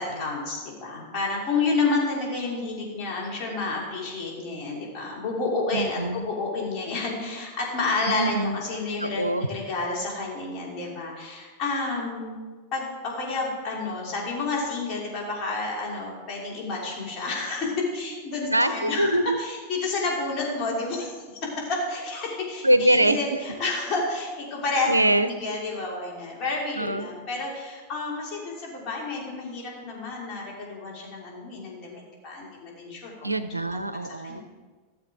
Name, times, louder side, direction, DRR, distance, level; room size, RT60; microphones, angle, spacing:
voice 1, 0.0-9.2 9.5-12.4 12.7-19.1 19.4-21.1 21.6-24.9 25.3-33.3 34.2-34.4, left 3 dB, 35° left, -4 dB, 3.1 m, -30 dB
voice 2, 5.7-6.3 8.1-8.6 9.0-9.5 18.5-19.4 22.6-23.4 24.9-25.3 26.8-27.1 33.2-34.4, right 1 dB, 85° right, 12 dB, 0.4 m, -23 dB
13.5 x 7.2 x 3.7 m, 1.4 s
figure-of-eight pair, 90°, 0 cm